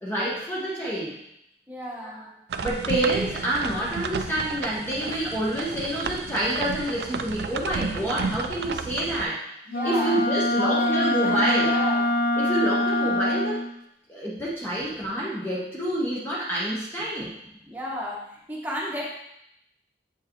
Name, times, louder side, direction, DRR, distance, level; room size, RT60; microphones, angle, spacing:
voice 1, 0.0-1.1 2.0-2.2 2.6-9.4 9.8-11.8 12.4-13.6 14.1-17.3, right 1 dB, 15° left, -6 dB, 0.9 m, -28 dB
voice 2, 1.7-2.2 9.7-10.2 10.6-12.1 17.7-18.2 18.5-19.0, equal, 10° right, -5 dB, 1.1 m, -33 dB
sound 1, 2.5-9.2, right 5 dB, 70° right, 0.4 m, -32 dB
Wind instrument woodwind instrument, 9.7-13.7, left 1 dB, 70° left, 0.5 m, -24 dB
7.6 x 4.6 x 3.1 m, 0.80 s
head